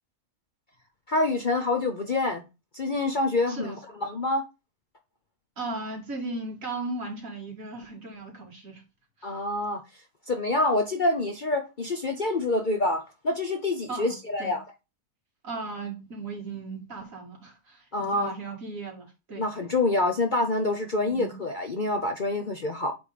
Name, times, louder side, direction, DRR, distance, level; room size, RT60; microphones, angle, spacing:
voice 1, 1.1-2.4 2.7-4.4 9.2-9.8 10.3-14.6 17.9-18.3 19.4-22.9, left 2 dB, 40° left, 0.8 m, -26 dB
voice 2, 5.6-8.8 9.2-9.3 13.9-14.6 15.4-19.4 21.1-21.4, right 3 dB, 60° right, 2.6 m, -37 dB
8.0 x 3.6 x 4.9 m
omnidirectional pair, 1.5 m